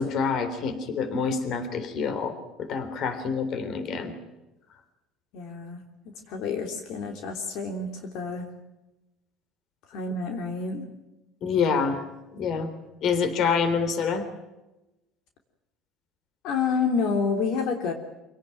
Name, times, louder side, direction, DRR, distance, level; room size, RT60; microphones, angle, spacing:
voice 1, 0.0-2.3 2.6-4.1 11.4-12.0 12.4-12.7 13.0-14.3, left 5 dB, 50° left, 10 dB, 3.6 m, -26 dB
voice 2, 5.3-5.8 6.3-8.4 9.9-10.8 16.4-17.9, left 5 dB, 65° left, 4 dB, 3.2 m, -28 dB
26.5 x 18.0 x 9.2 m, 1.0 s
cardioid pair, 140°, 0 cm